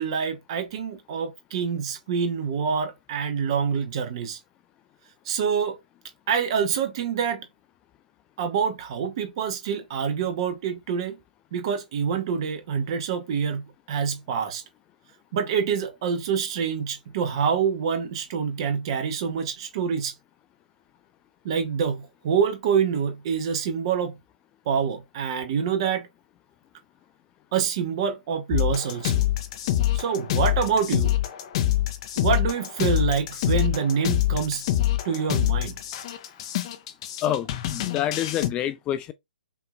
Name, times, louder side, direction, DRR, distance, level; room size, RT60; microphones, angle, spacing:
voice 1, 0.0-4.4 5.3-5.8 6.3-7.5 8.4-11.2 11.5-13.6 13.9-14.6 15.3-20.1 21.4-24.2 24.7-26.1 27.5-29.3 29.9-31.1 32.2-34.6 35.0-35.8, right 7 dB, 40° right, 1.1 m, -26 dB
sound 1, 28.5-38.5, left 13 dB, 35° left, 0.8 m, -25 dB
voice 2, 37.2-39.1, left 11 dB, 20° left, 0.4 m, -27 dB
5.8 x 2.9 x 2.4 m
figure-of-eight pair, 125°, 5 cm